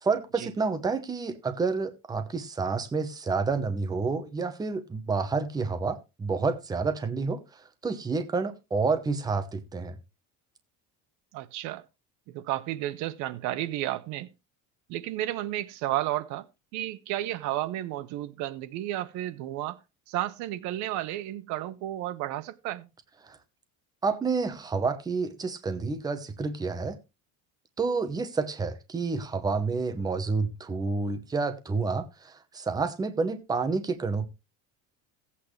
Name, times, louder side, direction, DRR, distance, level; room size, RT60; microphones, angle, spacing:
voice 1, 0.0-10.0 23.2-23.4 24.0-27.0 27.8-34.3, right 4 dB, 10° right, 0.9 m, -29 dB
voice 2, 11.3-11.8 12.3-14.3 14.9-16.4 16.7-19.8 20.1-22.9, right 14 dB, 55° right, 0.7 m, -32 dB
16.0 x 8.5 x 3.2 m
cardioid pair, 170°, 33 cm